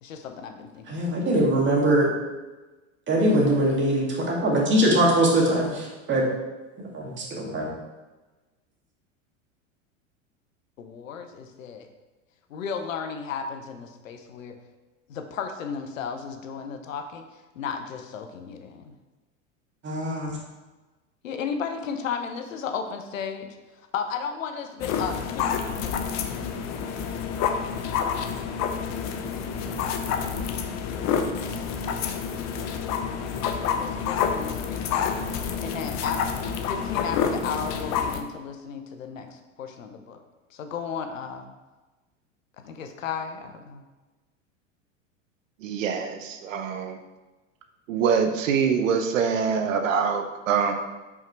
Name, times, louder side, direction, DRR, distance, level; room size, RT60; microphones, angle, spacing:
voice 1, 0.0-1.2 10.8-11.9 12.5-14.6 15.1-17.3 17.6-18.9 21.2-23.5 23.9-26.0 33.7-35.2 35.6-36.2 36.6-39.3 39.6-40.2 40.5-41.5 42.6-43.8, left 6 dB, 90° left, 6 dB, 0.9 m, -34 dB
voice 2, 0.9-2.1 3.1-6.3 6.9-7.7 19.8-20.3, right 1 dB, 30° right, -3 dB, 2.2 m, -22 dB
sound 1, 24.8-38.2, left 7 dB, 45° left, 0.8 m, -28 dB
voice 3, 45.6-47.0 47.9-50.7, right 6 dB, 80° right, 6 dB, 0.9 m, -24 dB
5.6 x 4.7 x 4.6 m, 1.2 s
hypercardioid pair, 100°, 38 cm